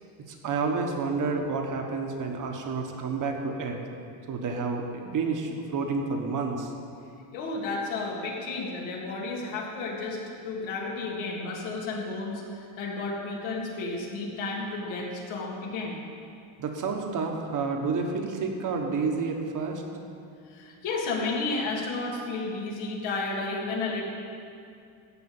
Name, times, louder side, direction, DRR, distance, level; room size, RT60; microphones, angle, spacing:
voice 1, 0.3-3.8 4.3-6.7 16.6-19.8, right 4 dB, 40° right, 3 dB, 1.5 m, -29 dB
voice 2, 7.3-16.0 20.5-24.0, left 3 dB, 70° left, -3 dB, 3.1 m, -32 dB
14.5 x 5.6 x 9.0 m, 2.5 s
cardioid pair, 155°, 48 cm